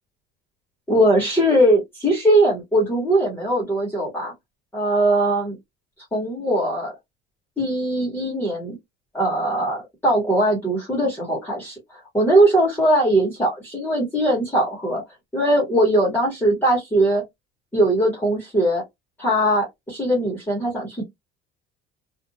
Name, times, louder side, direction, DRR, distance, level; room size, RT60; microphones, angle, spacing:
voice 1, 0.9-4.3 4.7-5.6 6.1-6.9 7.6-8.8 9.1-11.8 12.1-15.0 15.3-17.2 17.7-18.8 19.2-21.0, right 1 dB, 10° left, 1.1 m, -20 dB
2.5 x 2.4 x 2.8 m
cardioid pair, 145°, 21 cm